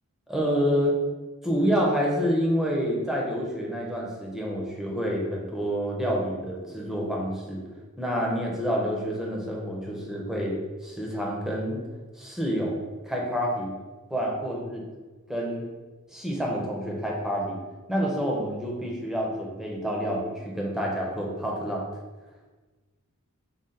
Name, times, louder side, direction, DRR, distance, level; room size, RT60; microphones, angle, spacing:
voice 1, 0.3-0.9 1.4-7.6 8.0-10.6 10.8-11.8 12.2-12.8 13.0-13.7 14.1-14.8 15.3-15.6 16.1-17.6 17.9-21.8, equal, ahead, -2 dB, 0.7 m, -28 dB
5.5 x 2.4 x 3.7 m, 1.3 s
head